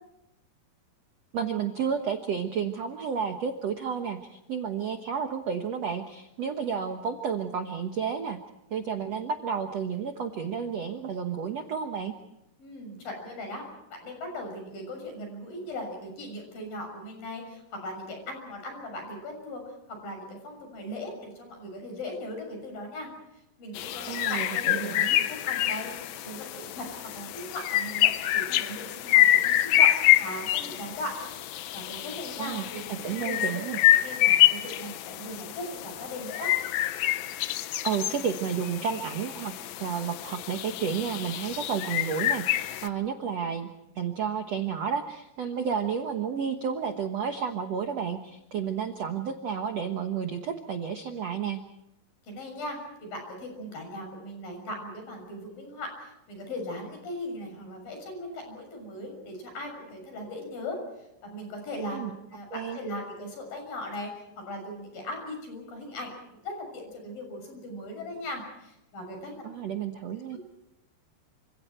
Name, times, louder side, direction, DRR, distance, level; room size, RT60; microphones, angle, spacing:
voice 1, 1.3-8.4 8.7-12.1 24.1-25.2 32.4-33.8 37.8-39.5 39.8-43.7 43.9-51.6 61.9-62.1 62.5-62.8 69.4-70.4, right 7 dB, 75° right, 6 dB, 1.5 m, -31 dB
voice 2, 12.6-13.6 13.9-23.1 23.6-25.9 26.2-29.9 30.2-31.1 31.7-33.6 33.9-36.5 52.2-60.8 61.2-69.4 70.3-70.4, left 1 dB, 55° left, 4 dB, 8.3 m, -38 dB
sound 1, 23.8-42.9, left 13 dB, 75° left, 2.2 m, -26 dB
29.0 x 27.0 x 4.5 m, 0.87 s
omnidirectional pair, 4.9 m